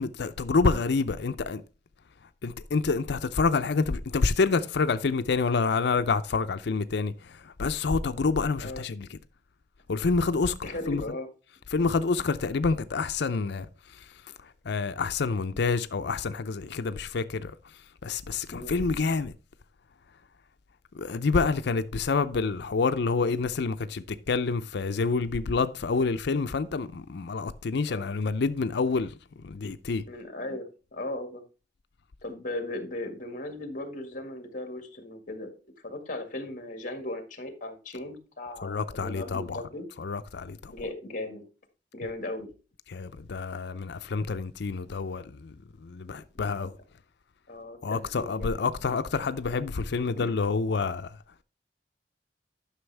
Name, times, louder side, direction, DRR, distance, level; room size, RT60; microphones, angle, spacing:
voice 1, 0.0-1.6 2.4-7.1 7.6-9.2 9.9-11.0 11.7-13.7 14.7-17.5 18.0-19.3 21.0-29.1 29.4-30.0 38.6-39.6 40.0-40.7 42.9-45.5 45.8-46.7 47.8-51.1, left 4 dB, 70° left, 0.5 m, -27 dB
voice 2, 10.6-11.3 18.5-18.7 27.9-28.0 30.1-31.4 32.2-35.5 35.8-39.9 40.7-41.5 41.9-42.5 47.5-48.7 50.2-50.3, left 1 dB, 45° left, 1.8 m, -37 dB
11.5 x 6.2 x 3.3 m
head